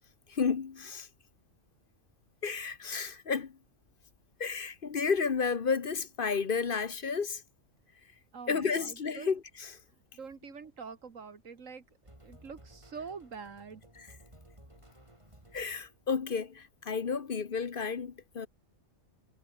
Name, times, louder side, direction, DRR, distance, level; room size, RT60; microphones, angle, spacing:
voice 1, 0.3-1.1 2.4-3.5 4.4-7.4 8.5-9.8 14.0-14.1 15.5-18.5, left 5 dB, 45° left, 1.1 m, -32 dB
voice 2, 8.3-9.3 10.1-11.8 12.2-13.8, right 5 dB, 90° right, 2.2 m, -45 dB
sound 1, 12.0-16.2, right 1 dB, 25° right, 6.7 m, -57 dB
omnidirectional pair, 1.3 m